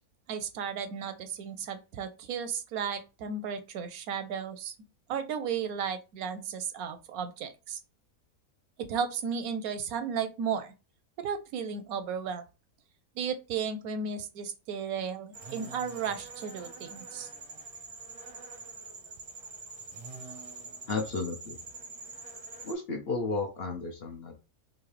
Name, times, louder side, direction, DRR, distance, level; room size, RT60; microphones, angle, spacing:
voice 1, 0.3-4.7 5.1-7.8 8.8-10.7 11.2-12.4 13.2-17.3, right 6 dB, 80° right, 1.1 m, -34 dB
Bees Crickets Insects Birds, 15.3-22.7, right 3 dB, 35° right, 0.6 m, -45 dB
voice 2, 20.9-21.6 22.6-24.3, left 3 dB, 50° left, 0.8 m, -33 dB
3.8 x 2.7 x 3.1 m
omnidirectional pair, 1.5 m